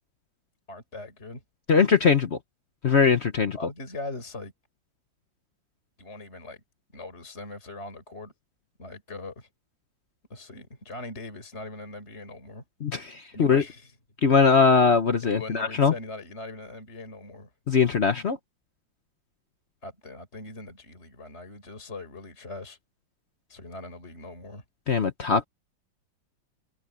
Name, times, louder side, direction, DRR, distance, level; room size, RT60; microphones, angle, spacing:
voice 1, 0.7-1.4 3.5-4.5 6.0-6.6 6.9-8.3 8.8-9.5 10.3-12.6 13.3-13.9 15.2-17.5 19.8-22.8 23.5-24.6, left 2 dB, 30° left, 4.5 m, -40 dB
voice 2, 1.7-2.4 2.8-3.6 12.8-13.6 14.2-15.9 17.7-18.4 24.9-25.4, left 5 dB, 50° left, 0.9 m, -21 dB
omnidirectional pair, 2.1 m